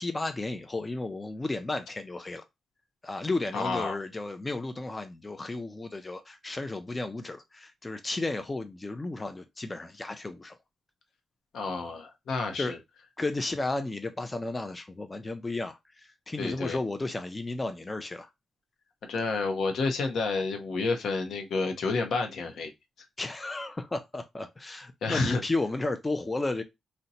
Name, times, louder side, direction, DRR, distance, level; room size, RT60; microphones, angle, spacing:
voice 1, 0.0-2.4 3.0-10.6 12.5-12.7 13.2-18.3 23.2-26.6, left 2 dB, 20° left, 0.4 m, -33 dB
voice 2, 3.5-4.0 11.5-12.8 16.4-16.8 19.0-22.7 25.0-25.4, left 3 dB, 75° left, 0.7 m, -30 dB
2.7 x 2.1 x 3.9 m
cardioid pair, 90°, 0 cm